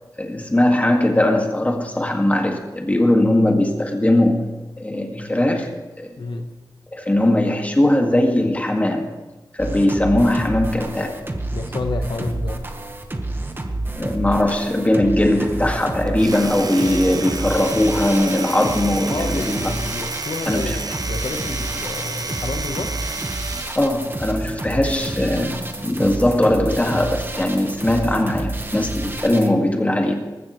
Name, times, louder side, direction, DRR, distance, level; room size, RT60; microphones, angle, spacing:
voice 1, 0.2-4.4 4.8-5.7 6.0-6.3 6.9-9.1 9.5-11.2 14.0-19.7 20.5-20.8 23.8-30.1, left 1 dB, 20° left, 2 dB, 2.1 m, -19 dB
voice 2, 6.2-6.5 11.5-12.6 19.1-22.9, left 3 dB, 70° left, 5 dB, 1.2 m, -29 dB
sound 1, 9.6-29.5, right 2 dB, 25° right, 1.4 m, -29 dB
Domestic sounds home sounds, 16.1-23.9, right 3 dB, 50° right, 0.9 m, -31 dB
19.5 x 15.0 x 3.3 m, 1.1 s
wide cardioid pair, 80°, 8 cm